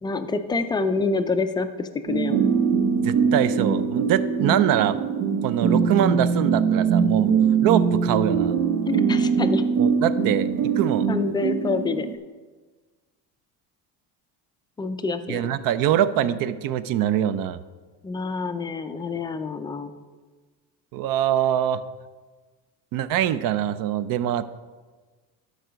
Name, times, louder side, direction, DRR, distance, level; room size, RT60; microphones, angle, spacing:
voice 1, 0.0-2.5 5.6-5.9 8.9-9.6 11.1-12.1 14.8-15.4 18.0-19.9, left 3 dB, 10° left, 9 dB, 0.3 m, -27 dB
sound 1, 2.1-12.2, right 6 dB, 85° right, 1.0 m, -22 dB
voice 2, 3.0-5.0 5.4-7.3 7.6-8.5 9.8-11.1 15.3-17.6 20.9-21.8 22.9-24.4, right 10 dB, 60° right, 14 dB, 0.6 m, -23 dB
12.5 x 4.7 x 5.1 m, 1.4 s
cardioid pair, 135°, 39 cm